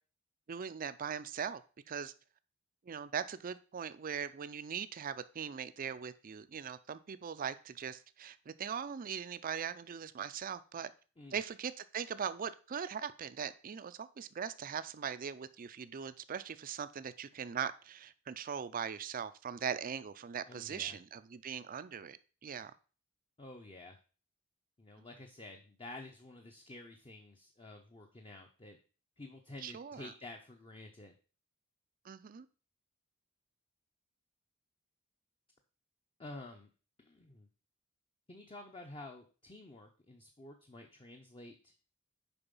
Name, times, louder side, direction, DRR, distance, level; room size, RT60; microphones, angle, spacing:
voice 1, 0.5-1.6 1.9-2.1 2.9-10.9 11.3-22.7 29.6-30.1 32.0-32.5, right 7 dB, 40° right, 14 dB, 0.4 m, -40 dB
voice 2, 20.5-21.0 23.4-24.0 24.8-28.8 29.2-31.1 36.2-36.7 37.0-37.5 38.3-41.7, left 2 dB, 25° left, 3 dB, 0.7 m, -50 dB
7.0 x 4.9 x 5.3 m, 0.37 s
head